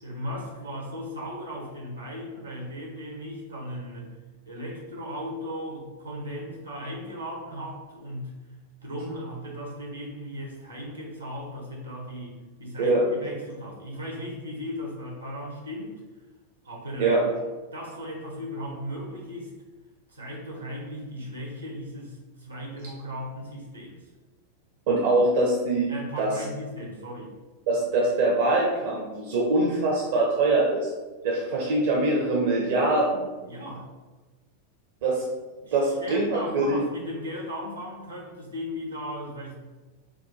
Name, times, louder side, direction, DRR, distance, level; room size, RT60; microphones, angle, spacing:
voice 1, 0.0-4.1 4.4-8.3 8.8-15.9 16.6-17.2 17.7-19.5 20.1-24.0 25.9-27.3 33.4-33.9 35.6-39.5, equal, 80° right, -1 dB, 0.9 m, -37 dB
voice 2, 24.9-25.9 26.2-26.3 27.7-30.9 31.2-33.3 35.0-35.2 35.7-36.8, right 2 dB, 55° right, -2 dB, 0.6 m, -23 dB
4.4 x 2.2 x 2.7 m, 1.2 s
figure-of-eight pair, 90°, 0 cm